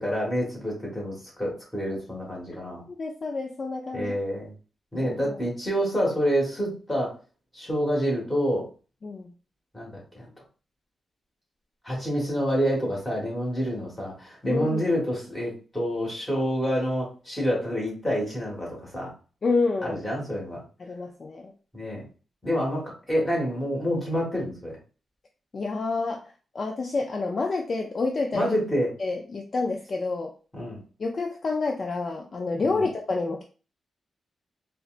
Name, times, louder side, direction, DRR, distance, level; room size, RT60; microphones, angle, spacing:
voice 1, 0.0-2.8 3.9-4.5 4.9-7.2 7.5-8.7 9.7-10.3 11.8-19.1 19.8-20.6 21.7-22.0 22.4-24.8 28.3-28.9 30.5-30.8 32.6-32.9, equal, 10° left, -4 dB, 1.4 m, -28 dB
voice 2, 3.0-4.1 5.0-5.4 9.0-9.3 14.5-14.8 19.4-20.0 20.8-21.5 25.5-26.2 26.5-28.5 29.0-30.3 31.0-33.4, left 3 dB, 40° left, 2 dB, 0.3 m, -28 dB
3.9 x 2.1 x 2.4 m, 0.36 s
wide cardioid pair, 150°, 0 cm